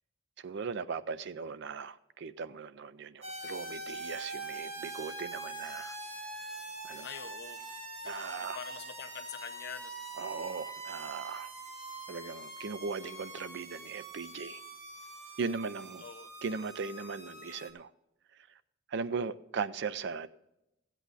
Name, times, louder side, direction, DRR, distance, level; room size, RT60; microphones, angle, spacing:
voice 1, 0.4-6.0 6.8-7.1 8.0-8.6 10.2-11.5 12.1-14.6 15.4-16.0 16.4-17.9 18.5-18.6 18.9-20.3, right 5 dB, 60° right, 0.5 m, -38 dB
sound 1, 3.2-17.7, right 2 dB, 35° right, 1.8 m, -44 dB
voice 2, 7.0-7.6 8.4-9.9 16.0-16.3, left 7 dB, 55° left, 0.8 m, -44 dB
14.5 x 8.2 x 4.0 m
head